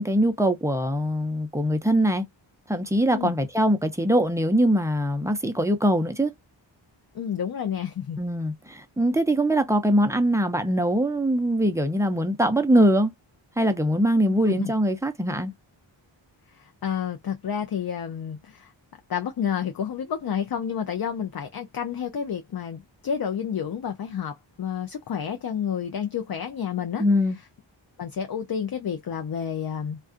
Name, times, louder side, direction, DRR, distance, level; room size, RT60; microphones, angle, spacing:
voice 1, 0.0-2.2 2.7-6.3 8.2-13.1 13.6-15.5 27.0-27.4, equal, 5° right, 0.6 m, -22 dB
voice 2, 3.0-3.3 7.1-8.2 14.5-14.7 16.5-18.7 19.1-27.0 28.0-30.0, left 8 dB, 50° left, 0.5 m, -30 dB
2.4 x 2.3 x 2.4 m
wide cardioid pair, 65°, 47 cm